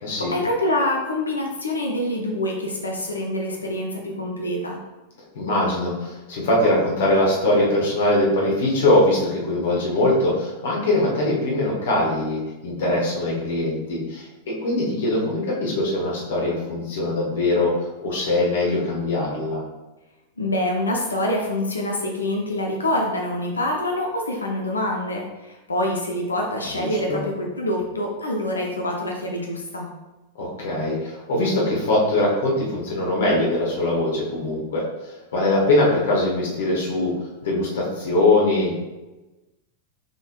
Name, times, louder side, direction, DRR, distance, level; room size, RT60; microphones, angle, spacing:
voice 1, 0.0-4.8 20.4-29.9, left 1 dB, 75° left, 0 dB, 0.7 m, -26 dB
voice 2, 5.3-17.7 18.0-19.6 26.7-27.2 30.4-37.1 37.4-38.8, left 1 dB, 60° left, -3 dB, 1.3 m, -22 dB
6.0 x 3.7 x 2.3 m, 1.1 s
figure-of-eight pair, 90°, 0 cm